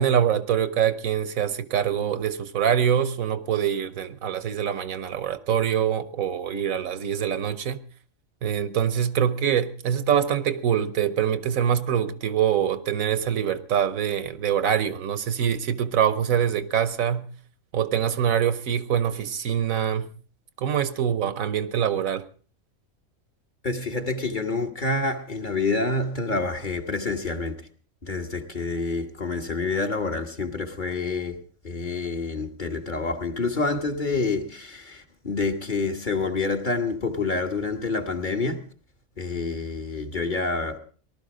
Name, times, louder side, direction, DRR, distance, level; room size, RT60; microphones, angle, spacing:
voice 1, 0.0-7.8 8.4-17.3 17.7-20.1 20.6-22.2, right 9 dB, 80° right, 1.3 m, -24 dB
voice 2, 23.6-27.5 28.0-31.4 31.6-38.6 39.2-40.8, left 3 dB, 35° left, 1.5 m, -27 dB
18.5 x 12.5 x 5.0 m
omnidirectional pair, 1.4 m